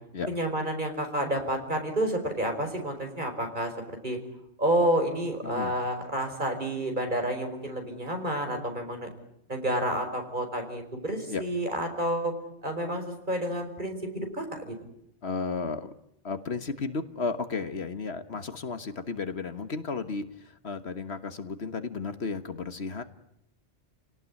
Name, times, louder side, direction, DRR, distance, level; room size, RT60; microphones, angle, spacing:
voice 1, 0.3-3.7 4.0-4.2 4.6-9.1 9.5-12.3 12.6-14.7, right 1 dB, 40° right, 4 dB, 5.0 m, -29 dB
voice 2, 5.4-5.8 11.3-11.4 15.2-15.9 16.2-23.0, left 4 dB, 60° left, 10 dB, 1.6 m, -33 dB
30.0 x 18.5 x 9.6 m, 0.79 s
omnidirectional pair, 1.2 m